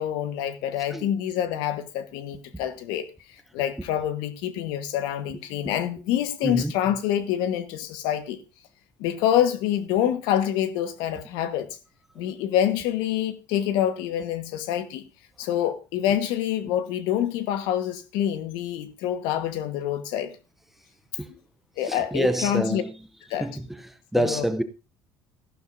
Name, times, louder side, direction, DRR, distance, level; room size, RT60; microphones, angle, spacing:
voice 1, 0.0-8.4 9.0-11.8 12.1-15.0 15.4-20.3 21.8-22.8 23.3-23.5 24.1-24.4, left 10 dB, 80° left, 1.2 m, -26 dB
voice 2, 21.8-22.9 23.4-24.6, right 1 dB, 5° right, 0.5 m, -27 dB
14.0 x 11.5 x 2.6 m
cardioid pair, 150°, 8 cm